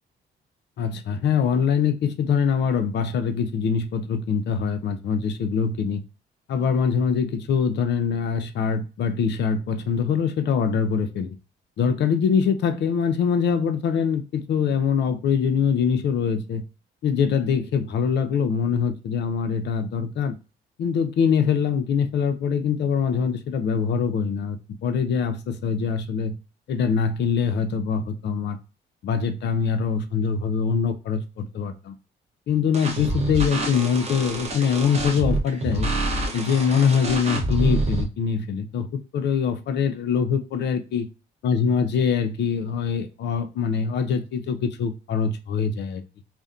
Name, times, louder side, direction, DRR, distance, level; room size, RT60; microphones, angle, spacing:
voice 1, 0.8-6.0 6.5-11.4 11.8-16.6 17.0-20.4 20.8-26.4 26.7-28.6 29.0-31.9 32.5-35.9 36.3-38.9 39.1-41.1 41.4-46.0, left 6 dB, 60° left, 0.5 m, -23 dB
sound 1, 32.7-38.0, right 2 dB, 35° right, 0.7 m, -27 dB
2.5 x 2.0 x 2.4 m
cardioid pair, 90°, 20 cm